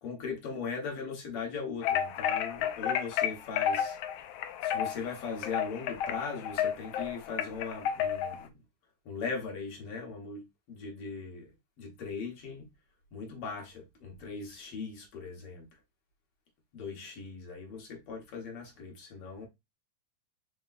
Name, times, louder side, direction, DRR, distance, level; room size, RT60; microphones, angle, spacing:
voice 1, 0.0-4.0 4.6-8.5 9.1-11.5 11.8-12.7 13.1-15.7 16.7-19.5, left 5 dB, 60° left, 1.8 m, -39 dB
sound 1, 1.8-8.4, left 9 dB, 85° left, 1.4 m, -32 dB
4.7 x 3.5 x 2.4 m
omnidirectional pair, 3.3 m